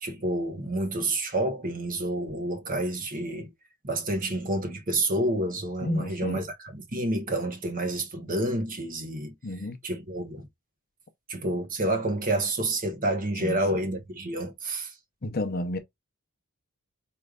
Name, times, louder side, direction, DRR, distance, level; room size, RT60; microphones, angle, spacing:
voice 1, 0.0-3.5 3.8-6.5 6.7-9.3 9.8-10.5 11.3-14.9, right 1 dB, 40° right, 1.1 m, -29 dB
voice 2, 5.8-6.5 9.4-9.8 13.4-13.8 15.2-15.8, left 1 dB, 45° left, 0.7 m, -31 dB
4.8 x 3.2 x 2.4 m
head